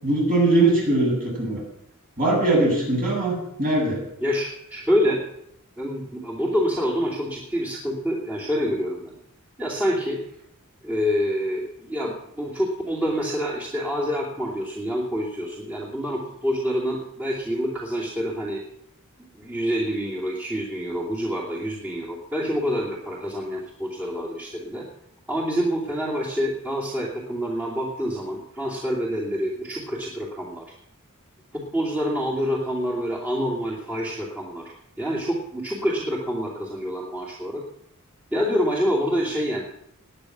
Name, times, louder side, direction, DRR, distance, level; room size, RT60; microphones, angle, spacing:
voice 1, 0.0-1.6 2.2-4.0, right 2 dB, 40° right, -2 dB, 7.4 m, -21 dB
voice 2, 4.2-5.2 5.8-9.1 9.6-10.2 10.8-18.6 19.3-24.9 25.3-30.6 31.5-37.6 38.3-39.6, equal, 10° right, -6 dB, 2.7 m, -27 dB
20.0 x 9.3 x 6.0 m, 0.76 s
head